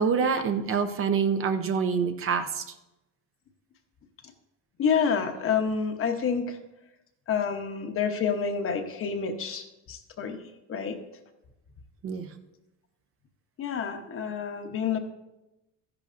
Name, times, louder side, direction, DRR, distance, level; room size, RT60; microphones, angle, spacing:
voice 1, 0.0-2.7 12.0-12.3, right 6 dB, 40° right, 7 dB, 0.7 m, -26 dB
voice 2, 4.8-6.6 7.3-10.4 10.7-11.0 13.6-15.0, left 6 dB, 40° left, 6 dB, 0.9 m, -28 dB
13.5 x 11.0 x 2.5 m, 0.95 s
cardioid pair, 165°, 34 cm